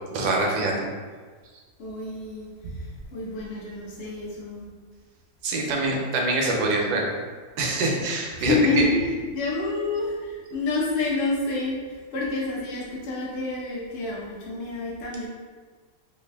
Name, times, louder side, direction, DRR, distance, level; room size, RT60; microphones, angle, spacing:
voice 1, 0.1-0.9 5.4-7.1 7.6-8.5, right 2 dB, 75° right, 0 dB, 1.2 m, -25 dB
voice 2, 1.8-4.7 8.4-15.3, left 3 dB, 60° left, -5 dB, 0.7 m, -28 dB
3.4 x 2.5 x 3.2 m, 1.5 s
omnidirectional pair, 1.8 m